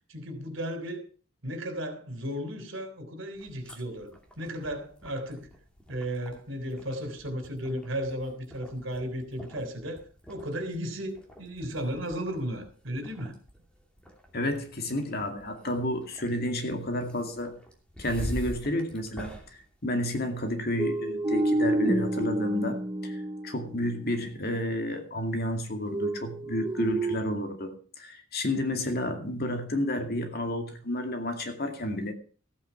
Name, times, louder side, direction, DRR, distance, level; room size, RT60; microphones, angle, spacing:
voice 1, 0.1-1.0 1.4-4.1 4.4-5.5 5.9-10.0 10.3-13.3, equal, 65° right, 3.5 m, -34 dB
sound 1, 3.3-20.5, equal, 5° left, 2.7 m, -46 dB
voice 2, 14.3-17.5 18.0-32.1, left 1 dB, 50° left, 2.3 m, -31 dB
sound 2, 20.8-24.1 25.9-27.2, right 1 dB, 20° right, 0.6 m, -29 dB
15.0 x 8.8 x 5.8 m
head